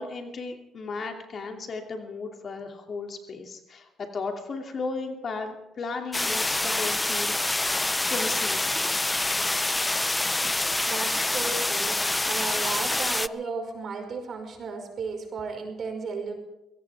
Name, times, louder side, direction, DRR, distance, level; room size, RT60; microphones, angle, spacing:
voice 1, 0.0-7.7 8.1-8.6, left 3 dB, 50° left, 3 dB, 2.7 m, -35 dB
sound 1, 6.1-13.3, left 2 dB, 15° left, 0.4 m, -26 dB
voice 2, 10.9-12.0 12.3-16.3, right 4 dB, 55° right, 3 dB, 5.4 m, -34 dB
23.0 x 17.0 x 3.5 m, 0.93 s
cardioid pair, 90°, 0 cm